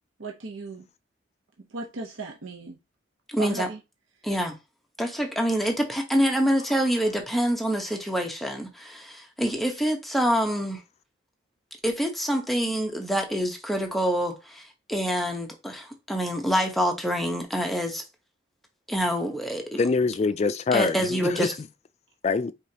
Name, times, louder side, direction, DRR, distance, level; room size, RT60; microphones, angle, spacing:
voice 1, 0.2-0.9 1.7-2.8 3.4-3.8, right 4 dB, 90° right, 0.9 m, -36 dB
voice 2, 3.3-3.7 4.2-4.5 5.0-10.8 11.8-14.6 14.9-18.0 18.9-19.8 20.7-21.5, equal, ahead, 0.9 m, -26 dB
voice 3, 19.8-21.5 22.2-22.5, left 4 dB, 35° left, 0.3 m, -24 dB
5.0 x 3.8 x 2.8 m
head